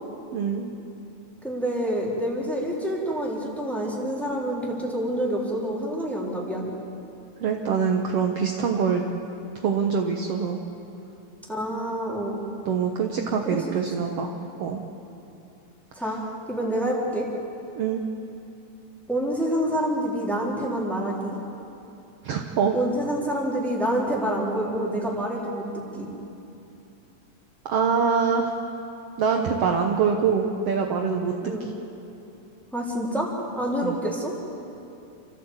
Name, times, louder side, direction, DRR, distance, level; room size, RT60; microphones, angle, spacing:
voice 1, 0.3-0.7 7.4-9.0 9.6-10.6 12.7-14.8 17.8-18.0 22.2-22.8 27.7-28.5 29.2-31.7 33.8-34.0, right 6 dB, 60° right, 2 dB, 1.9 m, -24 dB
voice 2, 1.4-6.7 11.5-12.4 13.5-13.6 14.0-14.1 16.0-16.2 16.5-17.3 19.1-21.4 22.7-26.1 31.4-31.7 32.7-33.3 33.5-34.3, right 1 dB, ahead, -4 dB, 3.6 m, -27 dB
28.5 x 14.0 x 8.1 m, 2.8 s
omnidirectional pair, 3.5 m